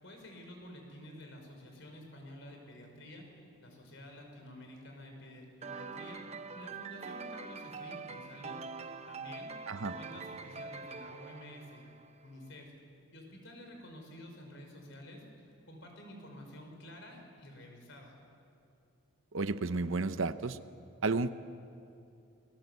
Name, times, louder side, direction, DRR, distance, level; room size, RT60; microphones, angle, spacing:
voice 1, 0.0-3.3 3.6-6.2 6.5-8.6 9.1-12.7 13.1-15.2 15.7-18.1, left 1 dB, 60° left, 2 dB, 5.2 m, -50 dB
sound 1, 5.6-12.3, right 4 dB, 30° right, 0.8 m, -44 dB
voice 2, 19.3-20.6 21.0-21.3, right 3 dB, 65° right, 12 dB, 0.8 m, -32 dB
28.0 x 20.0 x 8.1 m, 2.6 s
head